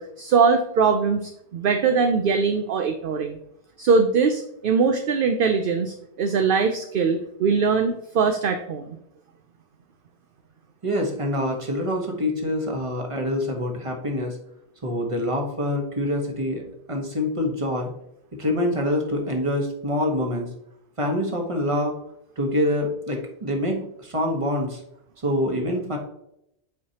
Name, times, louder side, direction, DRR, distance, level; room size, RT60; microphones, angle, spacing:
voice 1, 0.0-3.4 3.8-9.0, right 5 dB, 60° right, 6 dB, 0.7 m, -22 dB
voice 2, 10.8-14.4 14.8-16.6 16.9-17.9 18.3-20.5 21.0-22.0 22.4-24.8 25.2-26.0, left 1 dB, 30° right, 2 dB, 1.3 m, -25 dB
8.4 x 4.8 x 2.9 m, 0.77 s
omnidirectional pair, 1.1 m